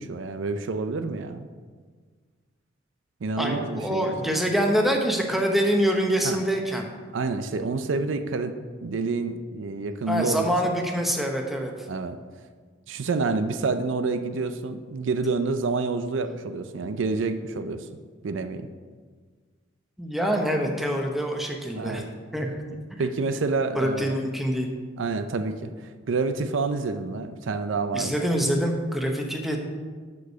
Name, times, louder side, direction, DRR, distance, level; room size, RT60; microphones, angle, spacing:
voice 1, 0.0-1.5 3.2-4.1 6.2-6.4 7.1-10.5 11.9-12.2 12.9-17.9 18.2-18.7 21.8-22.0 23.0-24.2 25.0-25.7 26.1-28.1, right 3 dB, 80° right, 9 dB, 0.5 m, -28 dB
voice 2, 3.4-6.9 10.1-11.7 20.0-22.0 22.3-22.5 22.9-23.0 23.8-24.7 27.9-29.6, equal, ahead, 1 dB, 0.8 m, -25 dB
6.1 x 5.3 x 6.7 m, 1.5 s
head